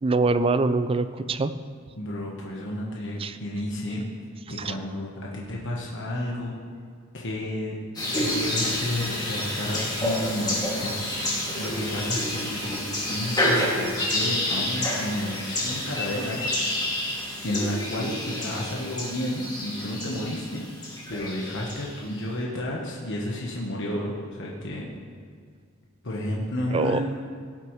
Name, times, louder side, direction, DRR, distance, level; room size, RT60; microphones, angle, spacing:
voice 1, 0.0-1.5 3.2-3.4 4.6-4.7 26.7-27.0, right 3 dB, 25° right, 12 dB, 0.4 m, -24 dB
voice 2, 2.0-4.0 4.5-6.5 7.1-7.8 8.2-10.9 11.6-16.5 17.4-20.6 21.1-24.9 26.0-27.0, left 1 dB, 60° left, -3 dB, 1.2 m, -31 dB
sound 1, 8.0-22.0, left 1 dB, 20° left, 2.3 m, -29 dB
17.5 x 7.8 x 3.2 m, 2.1 s
head